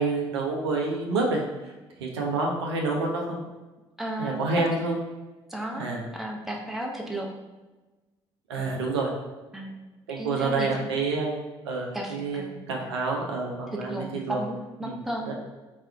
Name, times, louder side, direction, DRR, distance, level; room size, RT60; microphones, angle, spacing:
voice 1, 0.0-1.4 2.0-3.4 4.2-5.0 5.8-6.1 8.5-9.1 10.1-12.4 12.7-14.4 14.8-15.0 15.3-15.4, right 3 dB, 80° right, -1 dB, 0.5 m, -28 dB
voice 2, 4.0-4.6 5.5-5.8 6.1-7.3 9.5-9.8 10.1-10.8 11.9-12.5 12.8-12.9 13.9-15.3, right 1 dB, ahead, -1 dB, 0.6 m, -34 dB
4.2 x 2.2 x 2.3 m, 1.2 s
figure-of-eight pair, 50°, 14 cm